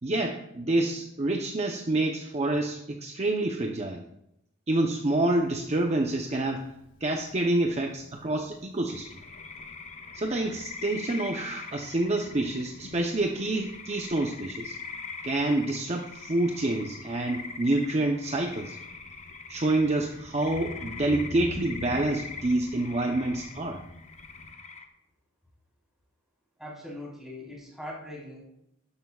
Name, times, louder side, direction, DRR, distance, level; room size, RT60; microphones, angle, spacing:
voice 1, 0.0-4.0 4.7-6.6 7.0-9.1 10.1-14.8 15.2-18.8 19.5-23.8, right 2 dB, 35° right, 2 dB, 0.8 m, -27 dB
Thunder, 5.2-24.5, left 1 dB, 65° left, 1.3 m, -48 dB
sound 1, 8.9-24.9, left 5 dB, 35° left, 0.9 m, -43 dB
voice 2, 26.6-28.4, left 1 dB, ahead, -5 dB, 4.0 m, -41 dB
12.0 x 11.5 x 2.4 m, 0.82 s
head